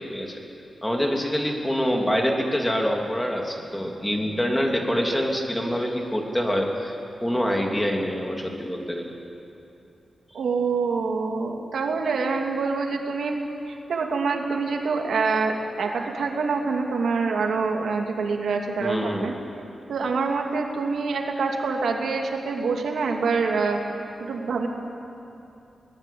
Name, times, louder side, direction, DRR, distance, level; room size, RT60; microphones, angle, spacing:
voice 1, 0.1-0.4 0.8-9.1 18.8-19.3, equal, 10° left, 1 dB, 3.1 m, -25 dB
voice 2, 10.3-13.4 13.7-19.3 19.9-24.7, right 4 dB, 85° right, 2 dB, 2.4 m, -26 dB
22.5 x 19.5 x 8.6 m, 2.8 s
wide cardioid pair, 110°, 0 cm